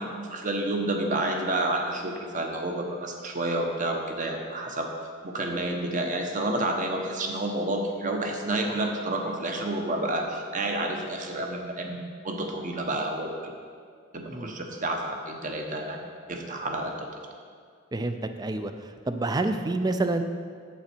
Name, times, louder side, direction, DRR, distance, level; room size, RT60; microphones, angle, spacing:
voice 1, 0.0-4.9 5.2-12.0 12.2-13.5 14.1-16.0 16.3-17.1, right 1 dB, 40° right, 3 dB, 0.9 m, -29 dB
voice 2, 17.9-20.2, right 2 dB, 20° right, 8 dB, 0.4 m, -28 dB
8.5 x 7.6 x 4.4 m, 2.2 s
head